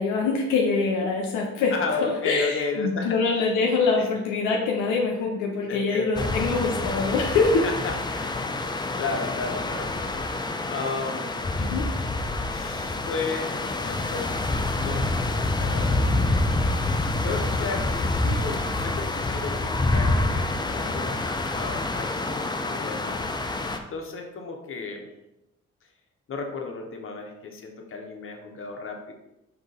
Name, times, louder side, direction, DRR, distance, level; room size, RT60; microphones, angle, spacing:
voice 1, 0.0-1.8 2.0-7.7 11.6-11.9, left 4 dB, 75° left, 0 dB, 0.5 m, -24 dB
voice 2, 1.7-3.2 4.0-4.1 5.7-6.3 7.6-8.5 9.0-9.9 10.7-11.4 12.5-14.4 14.7-16.6 17.2-21.2 21.5-23.2 23.9-25.1 26.3-29.1, left 4 dB, 40° left, 2 dB, 0.8 m, -33 dB
sound 1, 6.2-23.8, left 2 dB, 15° left, 0.4 m, -27 dB
3.8 x 2.8 x 3.6 m, 0.92 s
hypercardioid pair, 40°, 32 cm